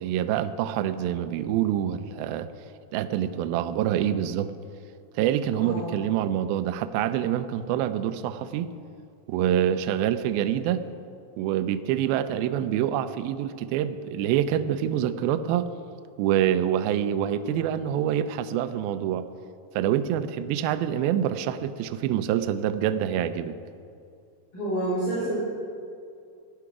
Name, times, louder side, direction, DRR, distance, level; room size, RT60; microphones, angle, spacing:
voice 1, 0.0-2.5 2.9-4.5 5.2-8.7 9.3-10.9 11.4-15.7 16.2-19.3 19.8-23.5, right 10 dB, 90° right, 11 dB, 2.1 m, -26 dB
voice 2, 5.6-6.0 24.5-25.4, right 1 dB, 30° left, -11 dB, 4.8 m, -28 dB
17.5 x 11.0 x 4.8 m, 2.4 s
omnidirectional pair, 5.0 m